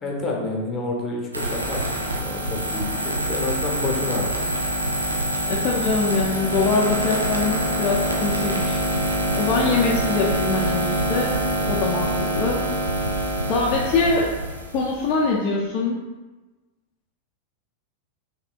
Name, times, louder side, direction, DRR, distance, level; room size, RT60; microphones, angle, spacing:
voice 1, 0.0-4.4 11.5-11.7, left 2 dB, 20° left, 0 dB, 1.1 m, -29 dB
sound 1, 1.3-15.1, right 1 dB, 80° right, 0.6 m, -25 dB
voice 2, 5.5-11.4 11.7-12.6 13.5-14.3 14.7-16.0, left 4 dB, 40° left, -3 dB, 0.5 m, -23 dB
5.5 x 3.6 x 2.4 m, 1.2 s
figure-of-eight pair, 90°, 0 cm